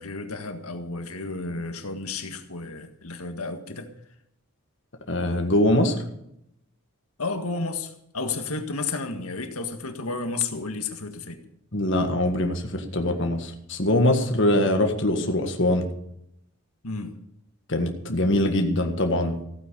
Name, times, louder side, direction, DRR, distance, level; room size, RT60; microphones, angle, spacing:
voice 1, 0.0-3.9 7.2-11.4 16.8-17.2, left 3 dB, 75° left, 7 dB, 1.8 m, -32 dB
voice 2, 5.1-5.9 11.7-15.9 17.7-19.4, left 1 dB, 55° left, 4 dB, 1.7 m, -23 dB
15.5 x 9.2 x 6.8 m, 0.76 s
head